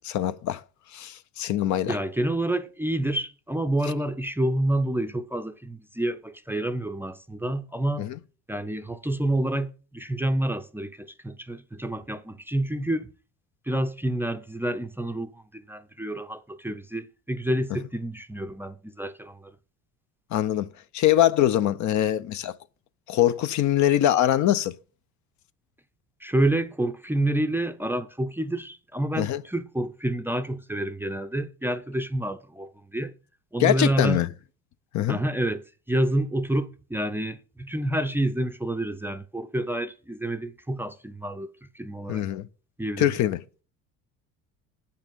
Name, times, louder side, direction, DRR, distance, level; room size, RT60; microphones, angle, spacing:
voice 1, 0.0-0.6 0.9-2.0 8.0-8.2 20.3-22.6 23.1-24.7 29.2-29.4 33.6-34.3 34.9-35.2 42.1-42.5 43.0-43.4, left 12 dB, 55° left, 0.6 m, -23 dB
voice 2, 1.9-8.1 8.5-13.1 13.7-19.5 26.2-33.1 33.5-34.2 35.1-42.2 42.8-43.1, right 1 dB, 5° right, 0.5 m, -28 dB
8.3 x 5.8 x 5.2 m
supercardioid pair, 85°, 34 cm